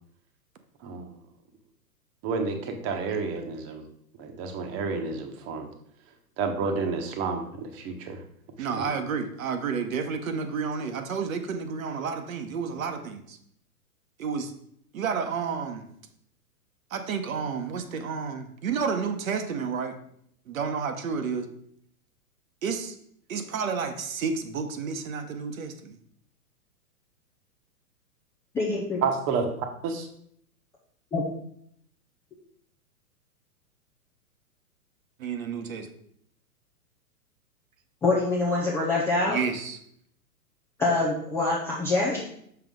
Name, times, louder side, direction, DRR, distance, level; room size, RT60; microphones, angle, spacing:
voice 1, 2.2-3.8 4.2-5.7 6.4-8.2 8.6-8.8 29.0-30.1, right 4 dB, 30° right, 5 dB, 1.1 m, -30 dB
voice 2, 8.6-13.4 14.2-14.5 14.9-15.8 16.9-20.0 20.5-21.5 22.6-23.0 23.3-26.0 35.2-35.9 39.3-39.8, right 5 dB, 60° right, 6 dB, 1.1 m, -30 dB
voice 3, 28.5-29.0 31.1-31.2 38.0-39.4 40.8-42.2, left 3 dB, 5° left, -5 dB, 0.4 m, -25 dB
6.7 x 5.8 x 3.7 m, 0.68 s
figure-of-eight pair, 110°, 46 cm